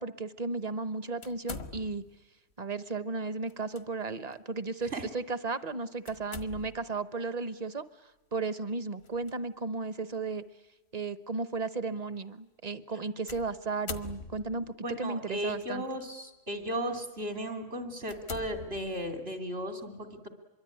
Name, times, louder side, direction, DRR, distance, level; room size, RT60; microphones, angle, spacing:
voice 1, 0.0-2.0 2.6-7.8 8.3-10.4 10.9-15.8, right 3 dB, 40° right, 14 dB, 1.1 m, -34 dB
sound 1, 1.2-2.2 3.5-3.8 4.3-4.4 6.1-6.9 9.0-9.3 10.1-10.2 13.3-14.7 15.6-16.0 16.6-16.8 17.3-17.4 18.0-19.3, left 4 dB, 80° left, 1.7 m, -44 dB
voice 2, 14.8-20.3, equal, 70° right, 6 dB, 3.2 m, -35 dB
25.0 x 23.0 x 9.9 m, 1.1 s
omnidirectional pair, 1.1 m